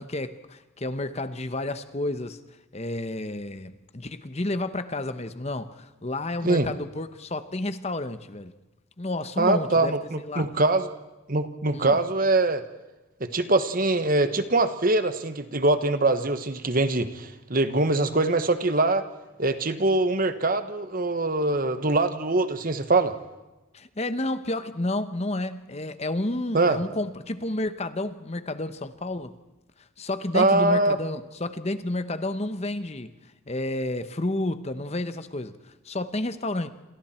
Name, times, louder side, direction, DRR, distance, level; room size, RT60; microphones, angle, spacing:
voice 1, 0.0-2.4 2.7-8.5 9.0-10.5 11.7-12.0 23.7-29.4 30.0-33.1 33.5-36.7, left 2 dB, 30° left, 1.0 m, -31 dB
voice 2, 9.4-10.9 11.3-12.6 13.2-19.0 19.4-23.1 26.5-26.8 30.3-31.0, right 2 dB, 40° right, 1.4 m, -23 dB
28.0 x 27.0 x 4.4 m
head